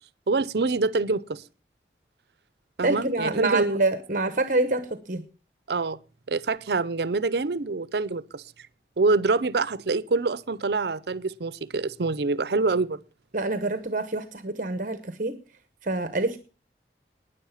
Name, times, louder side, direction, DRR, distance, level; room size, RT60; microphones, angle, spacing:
voice 1, 0.3-1.4 2.8-3.7 5.7-6.0 6.3-8.4 9.0-13.0, right 3 dB, 70° right, 0.6 m, -25 dB
voice 2, 2.8-5.2 13.3-15.3 15.8-16.4, right 2 dB, 45° right, 1.0 m, -26 dB
12.0 x 9.8 x 5.7 m
head